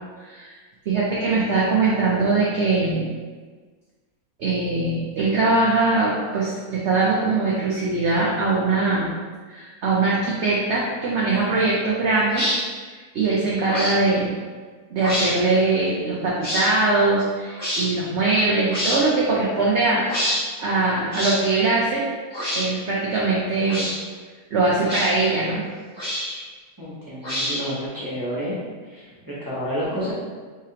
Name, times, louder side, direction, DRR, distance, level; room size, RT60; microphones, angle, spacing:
voice 1, 0.2-0.6 0.9-3.1 4.4-9.1 9.5-12.5 12.9-14.3 14.9-22.0 22.5-23.9 24.5-25.6, right 3 dB, 60° right, -5 dB, 0.8 m, -22 dB
sound 1, 12.3-12.6 13.7-14.0 15.0-15.3 16.4-16.7 17.6-17.8 18.7-19.0 20.1-20.4 21.1-21.4 22.3-22.7 23.6-24.0 24.9-25.1 26.0-26.4 27.2-27.8, equal, 15° left, 1.2 m, -26 dB
voice 2, 26.8-28.6 28.8-30.1, equal, 15° right, -10 dB, 0.8 m, -30 dB
4.6 x 3.3 x 2.8 m, 1.5 s
omnidirectional pair, 1.7 m